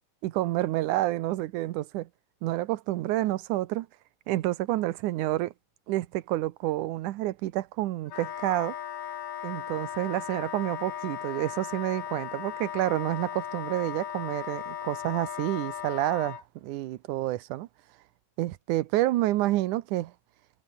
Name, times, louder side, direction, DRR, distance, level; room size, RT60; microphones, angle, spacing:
voice 1, 0.2-2.1 2.4-3.9 4.3-5.5 5.9-8.8 9.4-17.7 18.4-20.1, right 16 dB, 80° right, 2.3 m, -29 dB
Wind instrument woodwind instrument, 8.1-16.4, left 9 dB, 80° left, 3.8 m, -37 dB
omnidirectional pair, 3.7 m